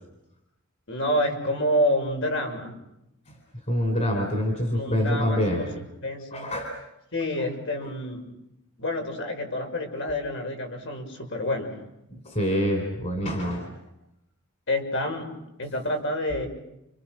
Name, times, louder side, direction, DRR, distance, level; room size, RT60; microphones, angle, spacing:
voice 1, 0.9-2.7 4.7-6.5 7.1-8.2 8.8-11.7 14.7-15.3 15.6-16.5, left 1 dB, 60° left, 4 dB, 6.4 m, -28 dB
voice 2, 3.7-5.7 6.3-6.8 12.1-13.7, equal, 35° left, 3 dB, 4.0 m, -26 dB
29.5 x 28.5 x 6.4 m, 0.86 s
head